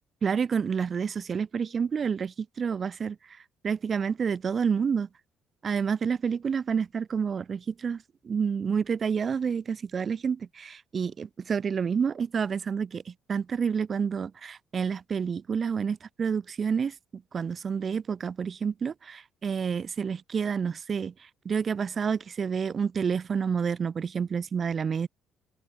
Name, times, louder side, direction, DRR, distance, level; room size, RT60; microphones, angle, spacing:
voice 1, 0.2-5.1 5.6-25.1, right 6 dB, 30° right, 1.2 m, -29 dB
cardioid pair, 160°, 0 cm